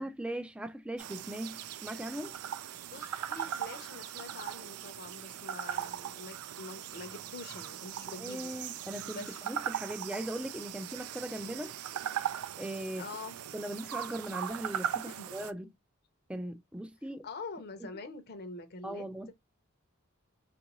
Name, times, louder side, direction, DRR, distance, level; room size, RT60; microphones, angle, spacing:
voice 1, 0.0-2.4 8.2-11.7 12.6-13.0 13.5-15.7 16.3-17.3 18.8-19.3, right 1 dB, 5° right, 0.4 m, -39 dB
sound 1, 1.0-15.5, right 9 dB, 80° right, 0.4 m, -39 dB
voice 2, 2.9-8.5 9.0-9.3 13.0-13.4 14.9-15.3 17.2-19.3, left 3 dB, 50° left, 0.7 m, -45 dB
4.5 x 2.5 x 3.0 m
head